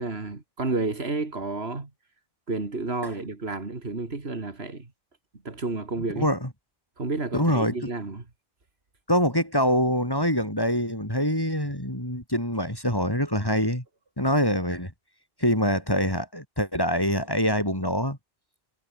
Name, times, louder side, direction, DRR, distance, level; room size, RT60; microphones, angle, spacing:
voice 1, 0.0-1.9 2.5-4.9 5.4-6.3 7.0-8.3, right 3 dB, 85° right, 3.1 m, -31 dB
voice 2, 6.2-6.5 7.3-7.7 9.1-13.8 14.2-14.9 15.4-18.2, equal, 20° left, 6.8 m, -24 dB
omnidirectional pair, 1.0 m